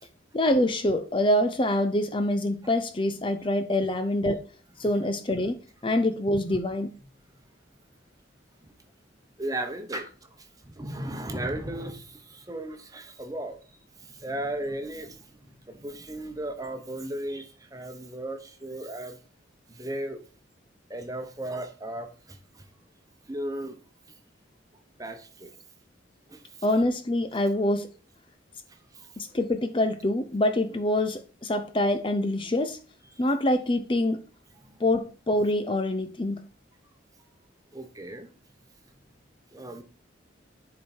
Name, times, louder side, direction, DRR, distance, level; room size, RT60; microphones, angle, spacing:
voice 1, 0.3-4.4 4.8-6.9 26.6-27.9 29.2-32.8 33.2-34.2 34.8-36.4, left 1 dB, 25° left, 0.6 m, -25 dB
voice 2, 9.4-10.1 10.6-13.6 14.0-19.2 19.7-20.2 20.9-22.4 23.3-23.8 25.0-25.5 26.3-26.4 28.9-29.1 37.7-38.3 39.5-39.8, right 1 dB, 20° right, 1.0 m, -35 dB
10.5 x 4.7 x 4.4 m
head